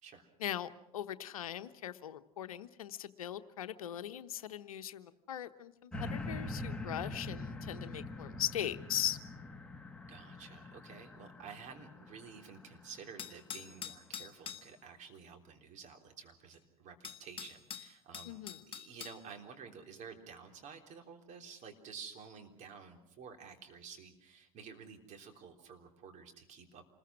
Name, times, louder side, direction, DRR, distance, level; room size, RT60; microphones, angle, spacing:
voice 1, 0.4-9.2 18.2-18.6, left 11 dB, 70° left, 11 dB, 1.0 m, -40 dB
sound 1, 5.9-13.3 13.9-14.0, left 2 dB, 5° left, 2.1 m, -44 dB
voice 2, 10.1-18.4 18.7-26.8, right 6 dB, 40° right, 4 dB, 3.6 m, -51 dB
sound 2, 13.2-14.7 16.5-16.6 17.0-19.2, left 8 dB, 30° left, 1.5 m, -45 dB
27.5 x 21.0 x 6.2 m, 0.81 s
figure-of-eight pair, 80°, 19 cm